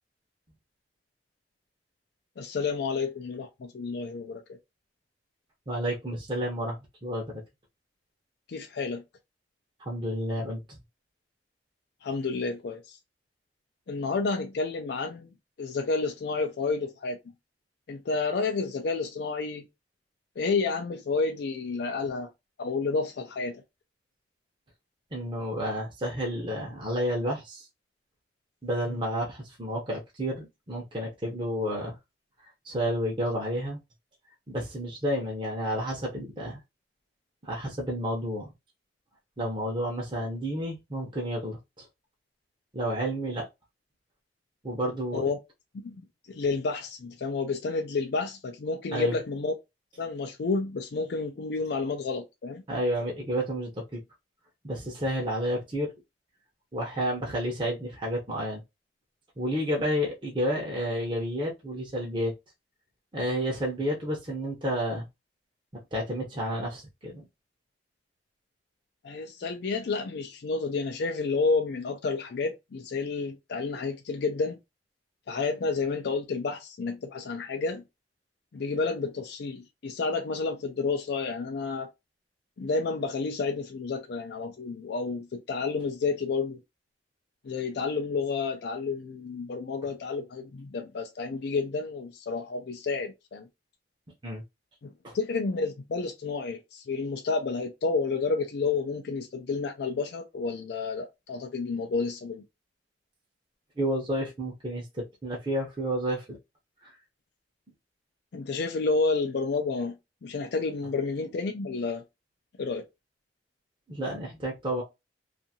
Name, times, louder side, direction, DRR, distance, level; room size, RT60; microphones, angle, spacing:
voice 1, 2.4-4.6 8.5-9.0 12.0-13.0 13.9-17.2 17.9-19.7 20.4-22.3 22.6-23.6 45.1-45.4 45.8-45.9 46.3-49.5 50.0-52.6 69.0-74.6 75.3-77.8 78.5-81.9 82.6-86.6 87.4-93.5 94.8-102.4 108.3-110.0 110.2-112.0 112.6-112.8, left 4 dB, 65° left, 0.4 m, -30 dB
voice 2, 5.7-7.3 9.8-10.8 25.1-27.7 28.6-32.0 32.6-33.8 34.5-36.6 37.4-38.5 39.4-41.9 42.7-43.5 44.6-45.3 48.9-49.2 52.7-54.0 54.6-55.9 56.7-58.6 59.4-62.3 63.1-65.0 65.7-67.2 94.2-94.4 95.0-95.2 103.8-106.4 106.8-106.9 113.9-114.8, equal, 30° right, 0.7 m, -31 dB
2.6 x 2.5 x 2.7 m
head